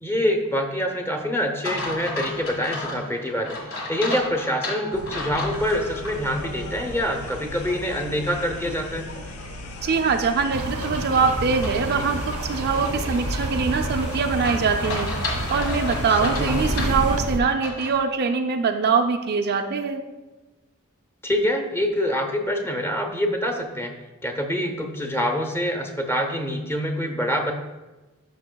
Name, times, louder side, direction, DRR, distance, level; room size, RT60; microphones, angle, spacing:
voice 1, 0.0-9.1 16.2-16.6 21.2-23.9 24.2-27.5, equal, 10° left, 3 dB, 0.8 m, -25 dB
sound 1, 1.6-6.2 6.6-6.7 11.6-18.0, left 2 dB, 65° left, 1.7 m, -34 dB
sound 2, 4.9-17.2, left 1 dB, 80° left, 0.9 m, -37 dB
voice 2, 9.8-15.1 15.5-20.0, right 5 dB, 45° right, 5 dB, 0.4 m, -23 dB
sound 3, 10.5-17.4, right 2 dB, 85° right, 0.8 m, -29 dB
11.5 x 5.5 x 2.3 m, 1.1 s
head